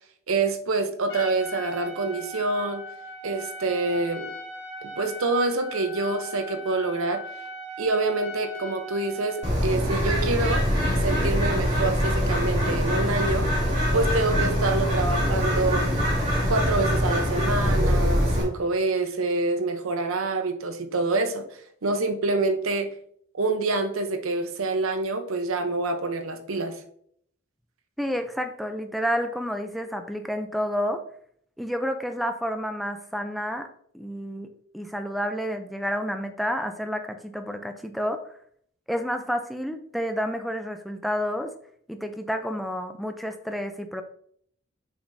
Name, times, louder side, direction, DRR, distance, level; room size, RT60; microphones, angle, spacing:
voice 1, 0.3-2.8 3.2-4.3 4.8-7.2 7.8-10.6 11.0-13.5 13.9-15.9 16.5-21.5 21.8-22.9 23.4-26.8, right 3 dB, 85° right, 8 dB, 0.8 m, -26 dB
Trumpet, 1.1-9.5, left 1 dB, 60° left, 1.6 m, -39 dB
Bird, 9.4-18.4, equal, 30° right, 2.2 m, -23 dB
voice 2, 28.0-31.0 31.6-33.7 33.9-34.5 34.7-38.3 38.9-41.5 41.9-44.0, equal, ahead, 6 dB, 0.4 m, -30 dB
6.9 x 5.0 x 2.7 m, 0.65 s
head